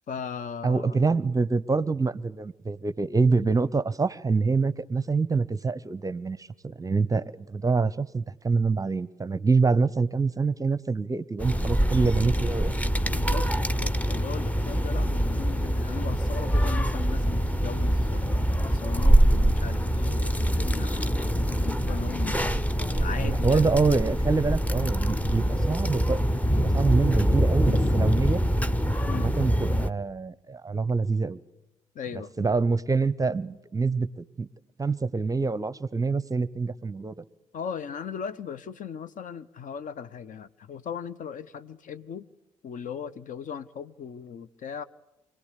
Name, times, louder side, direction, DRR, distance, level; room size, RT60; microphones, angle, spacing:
voice 1, 0.1-1.0 13.1-18.4 18.7-22.4 23.0-23.7 29.1-29.3 31.9-32.3 37.5-42.3 42.6-44.8, left 7 dB, 50° left, 16 dB, 0.8 m, -38 dB
voice 2, 0.6-12.8 23.2-28.4 29.1-31.4 32.4-34.5 34.8-37.1, right 4 dB, 20° right, 18 dB, 0.7 m, -26 dB
sound 1, 11.4-29.9, equal, 10° left, 0.8 m, -24 dB
25.0 x 18.0 x 8.4 m, 0.98 s
hypercardioid pair, 45°, 17 cm